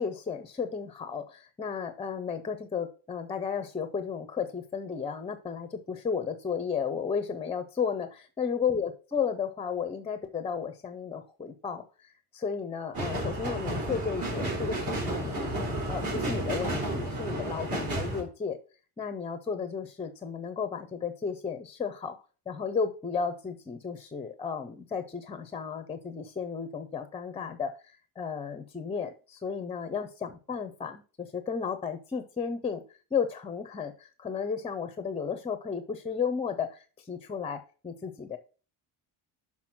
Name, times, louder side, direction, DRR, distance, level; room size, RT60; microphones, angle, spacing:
voice 1, 0.0-18.6 19.0-22.2 22.5-38.4, left 6 dB, 15° left, 10 dB, 0.4 m, -34 dB
sound 1, 12.9-18.2, right 1 dB, 50° right, 3.7 m, -32 dB
6.0 x 5.9 x 5.9 m, 0.37 s
cardioid pair, 155°, 44 cm